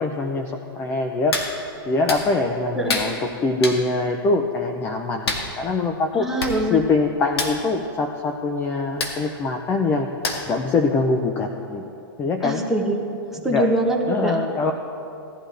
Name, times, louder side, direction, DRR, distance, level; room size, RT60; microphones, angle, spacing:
voice 1, 0.0-1.4 1.9-6.3 6.7-10.1 10.5-11.9 12.2-12.7 13.5-13.7 14.0-14.7, left 3 dB, 15° left, 4 dB, 0.5 m, -23 dB
Hands, 1.3-1.5 2.1-2.2 2.9-3.1 3.6-3.8 5.3-5.5 6.1-6.2 6.4-6.6 6.8-7.0 7.3-7.5 9.0-9.2 10.2-10.6 11.0-11.1, left 3 dB, 90° left, 2.1 m, -26 dB
voice 2, 6.1-6.8 12.4-13.0 13.3-14.4, right 1 dB, 5° right, -2 dB, 1.1 m, -23 dB
17.5 x 12.0 x 3.4 m, 2.7 s
hypercardioid pair, 145°, 13 cm